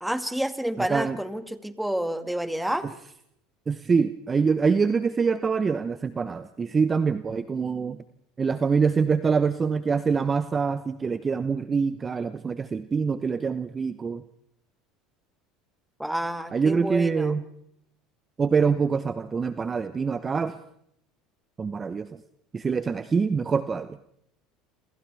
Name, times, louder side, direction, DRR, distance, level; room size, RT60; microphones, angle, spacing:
voice 1, 0.0-2.9 16.0-17.4, right 1 dB, 5° right, 9 dB, 1.9 m, -29 dB
voice 2, 0.8-1.2 2.8-2.9 3.7-8.0 8.4-14.2 16.5-17.4 18.4-20.5 21.6-22.1 22.5-24.0, right 5 dB, 25° right, 12 dB, 0.9 m, -25 dB
28.0 x 26.5 x 3.5 m, 0.73 s
hypercardioid pair, 90°, 0 cm